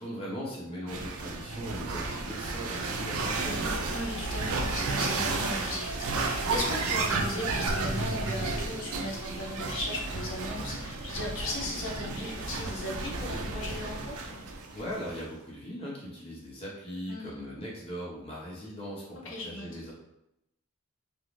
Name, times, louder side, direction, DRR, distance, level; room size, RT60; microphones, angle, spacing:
voice 1, 0.0-3.7 14.7-19.9, equal, 25° left, -5 dB, 0.7 m, -39 dB
sound 1, 0.9-15.2, right 3 dB, 85° right, 0.4 m, -32 dB
voice 2, 3.9-14.4 17.1-17.5 19.2-19.8, left 2 dB, 65° left, -1 dB, 0.7 m, -37 dB
2.5 x 2.3 x 3.1 m, 0.85 s
head